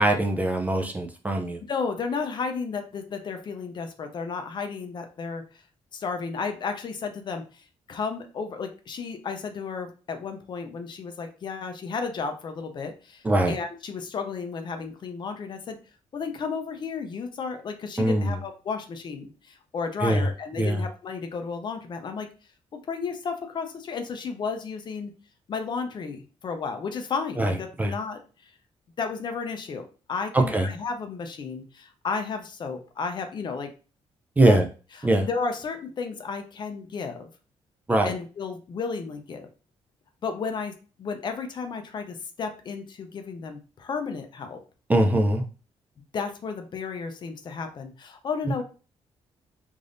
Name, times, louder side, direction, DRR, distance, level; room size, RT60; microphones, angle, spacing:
voice 1, 0.0-1.6 13.2-13.5 18.0-18.4 20.0-20.3 20.6-20.8 27.4-27.5 27.8-27.9 30.3-30.7 34.4-34.6 35.0-35.3 37.9-38.1 44.9-45.4, right 1 dB, 15° right, 3 dB, 0.4 m, -22 dB
voice 2, 1.7-5.4 5.9-15.8 16.1-22.3 22.7-25.1 25.5-28.5 29.0-33.7 34.4-34.6 35.0-37.3 38.0-39.5 40.2-40.7 41.0-44.6 46.1-48.6, left 5 dB, 45° left, 6 dB, 0.5 m, -33 dB
3.4 x 2.6 x 2.5 m, 0.35 s
cardioid pair, 140°, 11 cm